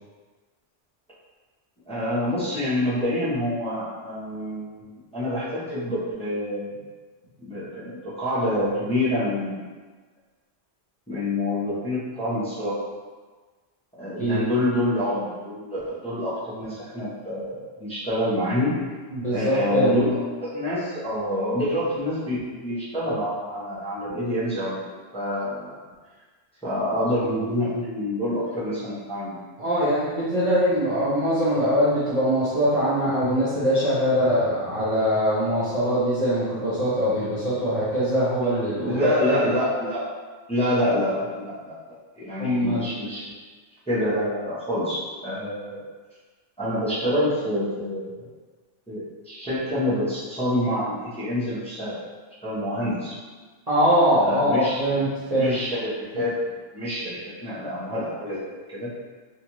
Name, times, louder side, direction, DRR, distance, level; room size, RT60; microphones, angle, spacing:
voice 1, 1.9-6.7 7.4-9.6 11.1-12.8 14.0-18.8 19.3-20.1 20.4-24.8 25.1-25.8 26.6-29.4 38.8-40.1 40.5-41.8 42.2-43.2 43.9-45.8 46.6-48.3 48.9-52.0 52.4-53.1 54.1-55.0 55.3-56.3 56.7-58.9, left 1 dB, 5° left, -11 dB, 0.7 m, -27 dB
voice 2, 19.1-20.1 29.6-39.0 39.2-39.3 42.4-42.9 53.7-55.6, equal, 40° right, -11 dB, 0.6 m, -22 dB
2.7 x 2.4 x 3.0 m, 1.4 s
omnidirectional pair, 1.2 m